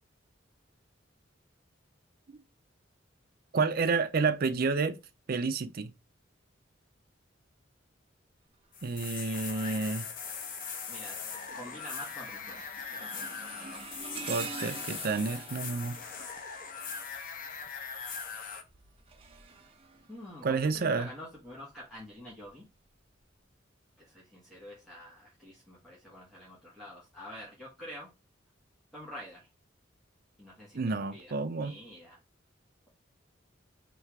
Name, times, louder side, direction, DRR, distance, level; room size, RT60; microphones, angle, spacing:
voice 1, 3.5-5.0 5.3-5.9 8.8-10.1 14.3-16.0 20.4-21.1 30.7-31.8, right 4 dB, 50° right, 0.5 m, -30 dB
sound 1, 8.7-18.6, left 5 dB, 45° left, 0.7 m, -40 dB
sound 2, 9.7-10.0 10.5-17.3 18.5-20.7 21.4-21.6 22.5-22.6, right 4 dB, 30° right, 1.0 m, -47 dB
voice 2, 11.5-12.6 12.9-13.3 20.1-22.6 24.0-28.1 28.9-29.5 30.4-32.2, left 1 dB, ahead, 1.2 m, -47 dB
3.2 x 3.0 x 4.6 m
head